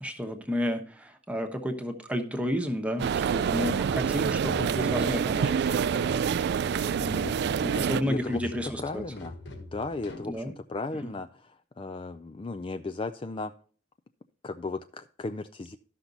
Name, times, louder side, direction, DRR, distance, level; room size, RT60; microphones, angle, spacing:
voice 1, 0.0-6.7 7.0-9.0 10.3-10.5 11.0-11.1, equal, 5° right, 5 dB, 1.1 m, -32 dB
sound 1, 3.0-8.0, right 7 dB, 60° right, 0.3 m, -27 dB
sound 2, 3.3-10.3, left 2 dB, 65° left, 1.5 m, -43 dB
voice 2, 7.9-8.5 8.8-11.5 11.8-13.5 14.4-15.8, left 3 dB, 25° left, 9 dB, 0.4 m, -36 dB
13.0 x 5.9 x 4.0 m, 0.43 s
head